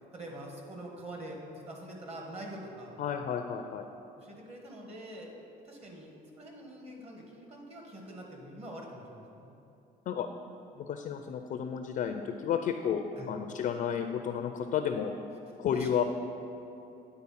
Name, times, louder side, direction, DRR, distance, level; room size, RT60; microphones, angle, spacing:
voice 1, 0.1-3.0 4.2-5.3 5.7-9.6 13.2-13.3 15.7-15.9, right 1 dB, 40° right, 0 dB, 1.6 m, -45 dB
voice 2, 3.0-3.9 10.1-10.3 10.8-15.1 15.6-16.0, left 8 dB, 55° left, 6 dB, 0.4 m, -32 dB
9.7 x 4.1 x 5.7 m, 2.9 s
cardioid pair, 110°, 17 cm